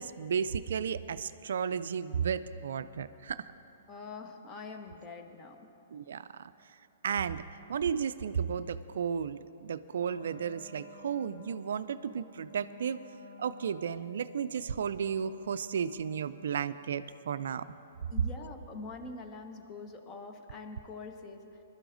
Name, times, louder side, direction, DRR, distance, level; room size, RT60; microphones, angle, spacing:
voice 1, 0.0-3.5 5.9-6.5 7.0-7.4 7.7-13.0 13.4-17.6, right 7 dB, 70° right, 14 dB, 0.3 m, -33 dB
voice 2, 3.9-5.7 18.1-21.5, left 3 dB, 25° left, 4 dB, 1.2 m, -44 dB
Wind instrument woodwind instrument, 9.9-16.6, left 2 dB, 75° left, 2.4 m, -52 dB
21.5 x 12.5 x 2.6 m, 3.0 s
hypercardioid pair, 120°, 0 cm